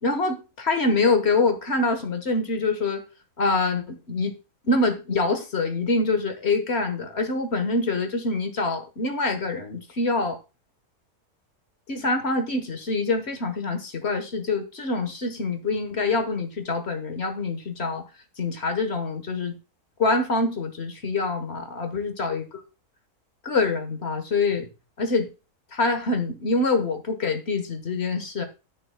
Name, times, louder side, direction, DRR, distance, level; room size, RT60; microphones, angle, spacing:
voice 1, 0.0-3.0 3.4-4.4 4.6-10.4 11.9-18.0 18.4-19.6 20.0-22.4 23.4-24.7 25.0-25.3 25.7-28.4, left 3 dB, 45° left, 1.4 m, -25 dB
9.9 x 9.5 x 2.2 m
omnidirectional pair, 1.6 m